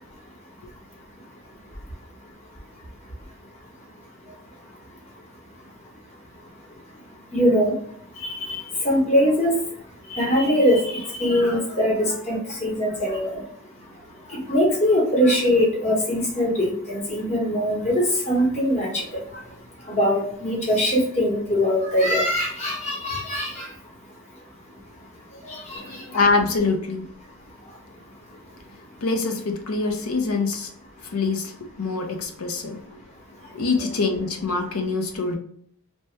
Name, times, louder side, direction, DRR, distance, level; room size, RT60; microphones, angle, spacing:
voice 1, 7.3-7.7 8.2-9.5 10.1-13.4 14.3-19.0 19.9-23.7 25.5-25.8 33.8-33.9, equal, 30° left, -3 dB, 1.0 m, -22 dB
voice 2, 25.8-27.1 29.0-30.7 31.1-33.0 33.5-35.3, left 3 dB, 80° left, 3 dB, 0.6 m, -25 dB
2.8 x 2.1 x 3.2 m, 0.63 s
head